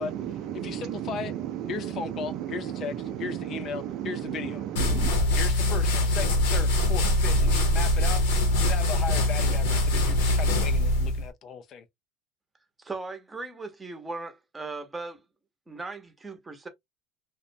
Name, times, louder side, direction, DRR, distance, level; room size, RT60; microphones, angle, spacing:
voice 1, 0.0-5.1, right 11 dB, 60° right, 0.4 m, -34 dB
voice 2, 0.6-1.3 1.7-2.9 3.2-4.6 5.3-8.2 8.6-11.8, left 7 dB, 45° left, 0.5 m, -36 dB
sound 1, 4.8-11.3, left 1 dB, 85° left, 0.7 m, -23 dB
voice 3, 12.8-15.2 15.7-16.7, right 3 dB, 15° right, 0.7 m, -38 dB
2.5 x 2.1 x 2.6 m
supercardioid pair, 100°, 0 cm